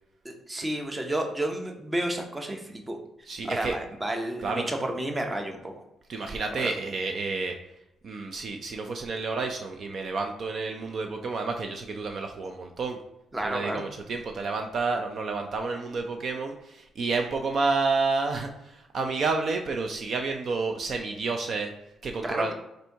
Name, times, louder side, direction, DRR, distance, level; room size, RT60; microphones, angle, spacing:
voice 1, 0.2-3.0 3.4-5.7 6.6-6.7 13.3-13.8 22.2-22.5, right 1 dB, 15° right, 3 dB, 0.7 m, -31 dB
voice 2, 3.3-3.7 4.4-4.7 6.1-7.6 8.0-13.0 13.4-21.7 22.0-22.5, right 4 dB, 55° right, 4 dB, 0.5 m, -30 dB
4.2 x 2.6 x 4.5 m, 0.86 s
cardioid pair, 90°, 0 cm